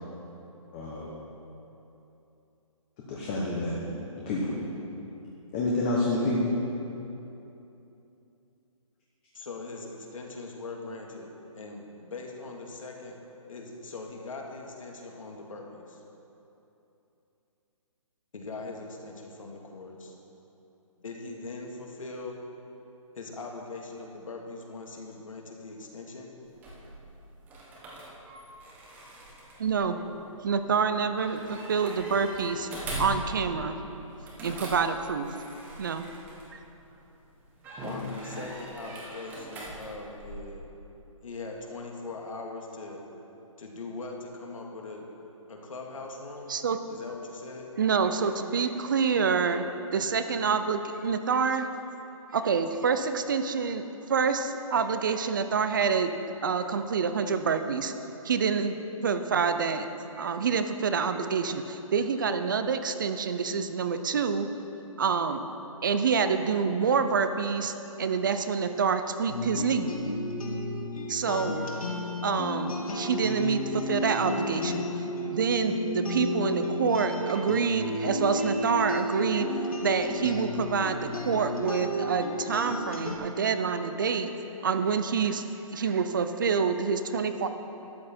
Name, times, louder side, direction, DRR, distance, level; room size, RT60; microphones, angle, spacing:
voice 1, 0.7-1.1 3.1-3.9 4.3-4.6 5.5-6.5, left 2 dB, 15° left, -4 dB, 1.0 m, -28 dB
voice 2, 9.3-13.2 13.5-16.0 18.3-20.2 21.0-22.4 23.2-26.3 37.8-40.7 41.2-43.0 43.6-45.1 45.5-46.5 46.9-47.7, left 3 dB, 70° left, 1 dB, 2.1 m, -41 dB
sound 1, 26.5-36.9 37.6-40.4, right 1 dB, 10° right, 1.1 m, -41 dB
voice 3, 29.6-30.0 30.4-32.7 33.0-33.8 34.4-35.3 35.8-36.1 36.5-36.6 46.5-46.8 47.8-49.6 49.9-51.7 52.3-56.1 56.4-57.9 58.2-59.9 60.2-64.5 65.0-65.4 65.8-69.9 71.1-71.7 72.2-75.0 75.3-79.5 79.8-84.3 84.6-85.4 85.7-87.5, right 5 dB, 35° right, 9 dB, 0.6 m, -27 dB
sound 2, 69.3-83.2, left 1 dB, 85° left, 1.7 m, -32 dB
12.5 x 9.8 x 4.4 m, 3.0 s
hypercardioid pair, 165°, 18 cm